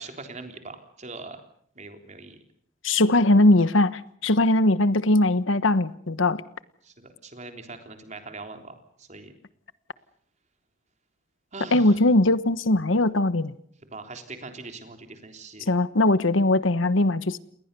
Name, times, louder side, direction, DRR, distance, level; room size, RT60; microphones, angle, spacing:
voice 1, 0.0-1.4 1.8-2.4 6.8-9.3 11.5-12.0 13.9-15.7, right 3 dB, 35° right, 6 dB, 3.6 m, -41 dB
voice 2, 2.8-6.4 11.7-13.5 15.7-17.4, left 2 dB, 75° left, 15 dB, 1.2 m, -20 dB
29.5 x 21.0 x 6.9 m, 0.62 s
head